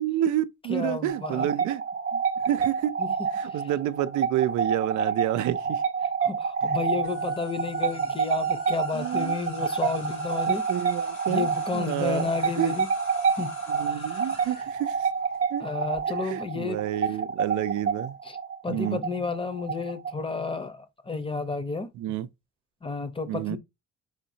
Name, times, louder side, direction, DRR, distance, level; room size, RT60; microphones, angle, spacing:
voice 1, 0.0-1.8 2.1-2.9 3.3-5.8 8.9-9.4 10.5-12.3 12.6-12.7 13.7-15.1 15.5-15.6 16.2-18.2 18.7-19.0 22.0-22.3 23.3-23.6, right 12 dB, 75° right, 0.5 m, -29 dB
voice 2, 0.7-1.5 3.0-3.1 6.2-10.6 11.3-12.9 13.4-13.5 13.9-14.1 15.6-16.8 18.2-18.4 18.6-21.9 22.8-23.6, left 4 dB, 20° left, 0.8 m, -31 dB
sound 1, 1.1-20.5, right 6 dB, 50° right, 0.8 m, -28 dB
sound 2, 7.0-16.0, left 3 dB, 85° left, 2.0 m, -46 dB
5.0 x 2.7 x 2.7 m
cardioid pair, 90°, 30 cm